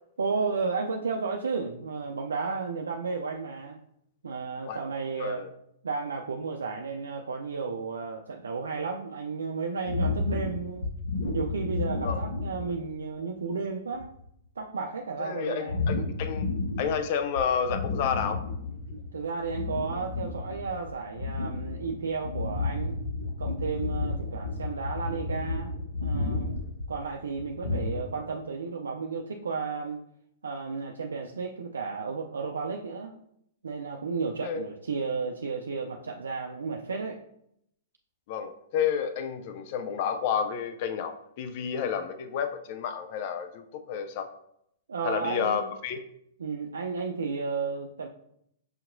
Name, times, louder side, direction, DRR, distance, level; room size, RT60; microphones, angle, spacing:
voice 1, 0.2-3.8 4.2-5.4 5.8-10.9 11.3-14.2 14.6-15.8 19.1-22.9 23.4-26.6 26.9-30.0 30.4-33.2 33.6-37.2 44.9-45.7 46.4-48.1, right 4 dB, 85° right, 2 dB, 0.4 m, -33 dB
voice 2, 5.2-5.5 12.0-12.2 15.2-16.5 16.8-18.4 34.4-34.6 38.3-44.3 45.0-46.0, left 7 dB, 50° left, 8 dB, 0.4 m, -30 dB
sound 1, 9.9-12.9 13.4-13.5 13.9-14.3 15.7-17.1 17.4-19.1 19.4-28.0, left 3 dB, 85° left, 1.0 m, -32 dB
6.4 x 2.9 x 2.6 m, 0.74 s
hypercardioid pair, 115°, 0 cm